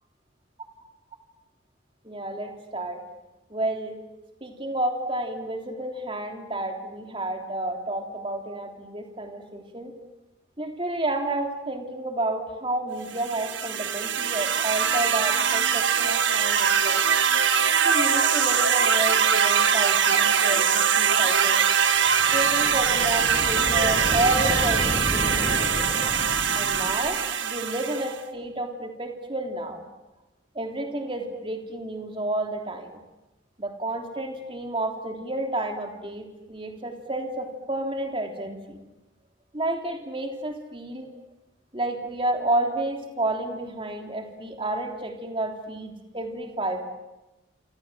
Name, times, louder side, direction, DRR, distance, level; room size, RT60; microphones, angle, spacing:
voice 1, 2.0-3.0 3.5-4.0 4.4-9.9 10.6-17.0 17.8-21.6 22.3-25.7 26.5-29.8 30.5-33.0 33.6-38.8 39.5-41.1 41.7-46.9, right 1 dB, 25° right, 3 dB, 3.4 m, -30 dB
sound 1, 13.1-28.2, right 7 dB, 70° right, 1.7 m, -22 dB
sound 2, 21.9-27.4, left 1 dB, 20° left, 4.7 m, -32 dB
28.5 x 26.5 x 7.6 m, 1.0 s
head